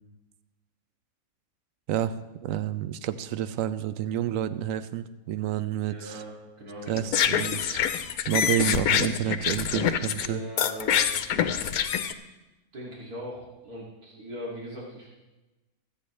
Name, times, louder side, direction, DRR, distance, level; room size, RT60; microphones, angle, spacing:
voice 1, 2.4-6.2 6.9-7.8 8.3-10.4 11.1-11.2, right 10 dB, 70° right, 13 dB, 1.0 m, -29 dB
voice 2, 5.9-7.1 10.2-11.1 11.3-11.8 12.7-15.1, equal, 90° right, -5 dB, 3.0 m, -40 dB
sound 1, 6.9-10.3 10.6-12.1, left 9 dB, 85° left, 1.2 m, -25 dB
24.5 x 8.6 x 3.2 m, 1.1 s
omnidirectional pair, 1.5 m